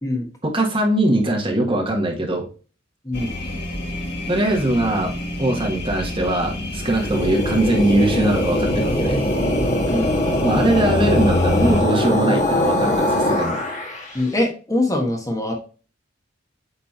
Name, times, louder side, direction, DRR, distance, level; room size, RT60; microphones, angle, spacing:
voice 1, 0.4-2.4 4.3-5.1 5.4-9.2 10.4-13.6, right 1 dB, 30° right, 0 dB, 1.7 m, -21 dB
voice 2, 3.0-3.4 9.9-10.2 14.1-15.5, left 1 dB, 20° left, 1 dB, 1.3 m, -23 dB
sound 1, 3.1-11.8, left 1 dB, 60° left, 1.9 m, -27 dB
sound 2, 6.8-14.2, left 1 dB, 40° left, 1.8 m, -22 dB
8.6 x 3.4 x 4.2 m, 0.37 s
head